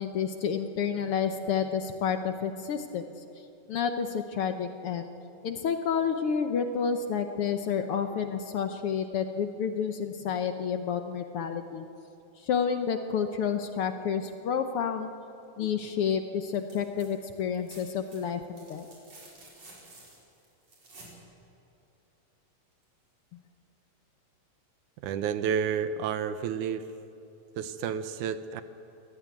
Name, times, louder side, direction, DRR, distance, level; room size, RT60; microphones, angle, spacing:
voice 1, 0.0-3.0 3.7-5.1 5.4-11.8 12.4-15.1 15.6-18.9, left 7 dB, 70° left, 7 dB, 1.4 m, -30 dB
sound 1, 16.5-17.1 17.4-21.2 22.8-22.9, right 2 dB, 50° right, 6.8 m, -52 dB
voice 2, 25.0-26.8 27.6-28.6, right 7 dB, 75° right, 11 dB, 2.2 m, -30 dB
22.5 x 18.0 x 9.4 m, 2.7 s
omnidirectional pair, 3.7 m